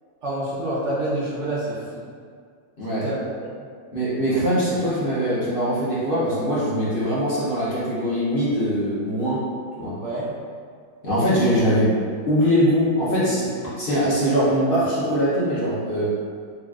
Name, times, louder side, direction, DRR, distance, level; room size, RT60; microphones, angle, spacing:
voice 1, 0.2-2.0 3.0-3.5 10.0-10.3, right 1 dB, 55° right, -9 dB, 0.9 m, -27 dB
voice 2, 3.9-9.4 9.8-10.0 11.0-11.9 12.3-16.1, equal, 55° left, -10 dB, 0.6 m, -22 dB
3.8 x 2.3 x 2.3 m, 2.1 s
omnidirectional pair, 1.8 m